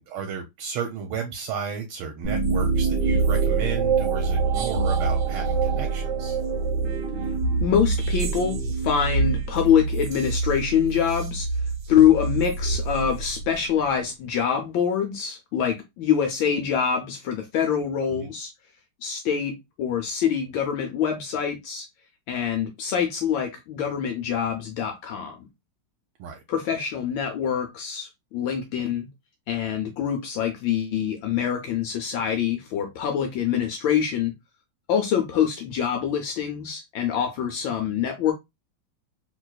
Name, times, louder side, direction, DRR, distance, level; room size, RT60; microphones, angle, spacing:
voice 1, 0.0-6.4 18.1-18.3 26.2-26.4, right 6 dB, 85° right, 1.5 m, -33 dB
sound 1, 2.2-13.8, right 4 dB, 65° right, 1.3 m, -25 dB
voice 2, 7.6-11.5 11.9-18.5 19.0-21.9 22.3-25.4 26.5-29.1 29.5-34.3 34.9-38.3, left 8 dB, 75° left, 1.3 m, -25 dB
3.3 x 3.0 x 2.2 m
omnidirectional pair, 2.3 m